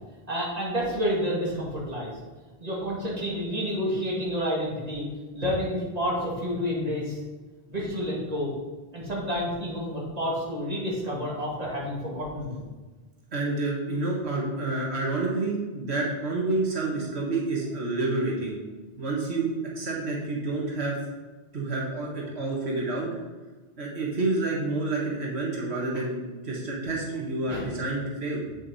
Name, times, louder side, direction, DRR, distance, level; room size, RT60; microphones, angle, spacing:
voice 1, 0.3-2.2 2.6-5.1 5.3-7.2 7.7-8.5 8.9-12.7 27.5-27.6, equal, 40° right, -5 dB, 2.6 m, -29 dB
voice 2, 13.3-18.6 19.0-21.0 21.5-23.2 23.8-28.6, right 2 dB, 85° right, -2 dB, 1.7 m, -29 dB
7.9 x 7.2 x 4.1 m, 1.3 s
omnidirectional pair, 1.1 m